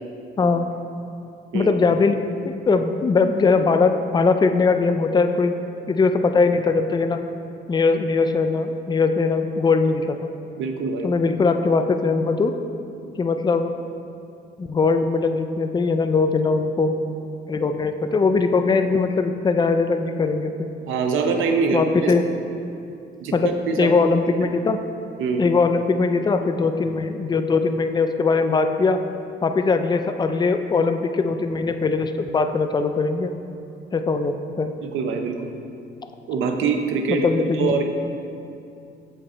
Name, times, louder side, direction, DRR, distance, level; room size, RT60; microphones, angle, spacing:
voice 1, 1.5-5.5 5.9-7.2 7.7-10.3 11.0-12.5 13.2-13.7 14.6-16.9 17.5-20.7 21.7-22.2 23.3-24.8 25.4-29.0 29.4-33.3 33.9-34.7 37.1-37.7, left 4 dB, 20° left, 7 dB, 0.4 m, -21 dB
voice 2, 10.6-11.1 20.9-22.1 23.2-23.9 25.2-25.4 34.8-35.5 36.3-37.3 37.6-37.8, right 5 dB, 85° right, 5 dB, 0.7 m, -24 dB
7.3 x 5.1 x 4.3 m, 2.7 s
cardioid pair, 90°, 20 cm